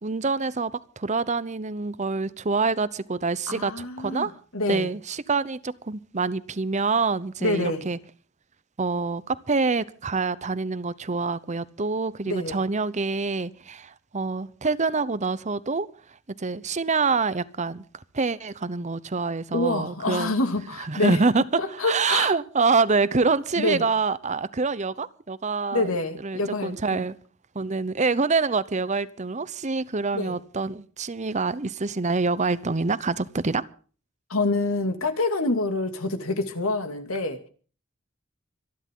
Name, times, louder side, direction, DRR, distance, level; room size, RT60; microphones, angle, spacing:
voice 1, 0.0-4.3 4.7-8.0 8.8-15.9 16.4-17.8 18.1-20.3 20.8-21.4 21.7-25.9 26.2-27.1 27.5-33.7, right 4 dB, 35° right, 0.8 m, -26 dB
voice 2, 3.5-4.9 7.4-7.8 12.3-12.6 19.5-21.2 21.6-22.3 23.6-23.8 25.7-27.0 30.1-30.4 34.3-37.4, left 2 dB, 80° left, 2.6 m, -27 dB
26.0 x 11.0 x 3.8 m
head